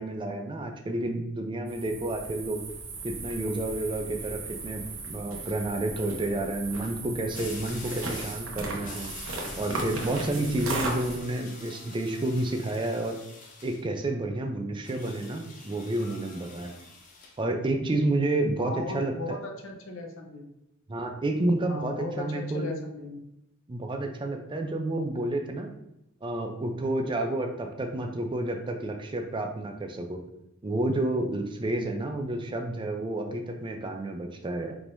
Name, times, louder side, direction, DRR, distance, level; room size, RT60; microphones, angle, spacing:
voice 1, 0.0-2.6 3.0-9.1 9.6-13.2 13.6-16.7 17.4-19.4 20.9-22.7 23.7-25.7 26.2-30.2 30.6-34.7, right 2 dB, 25° right, 4 dB, 0.5 m, -30 dB
sound 1, 1.7-11.2, right 2 dB, 90° right, 0.9 m, -37 dB
sound 2, 4.4-4.5 7.4-8.5 8.8-13.8 14.8-17.4, left 3 dB, 40° left, 0.7 m, -46 dB
voice 2, 18.6-20.5 21.7-23.2, left 2 dB, 75° left, 3 dB, 0.7 m, -37 dB
4.5 x 3.6 x 2.6 m, 0.86 s
head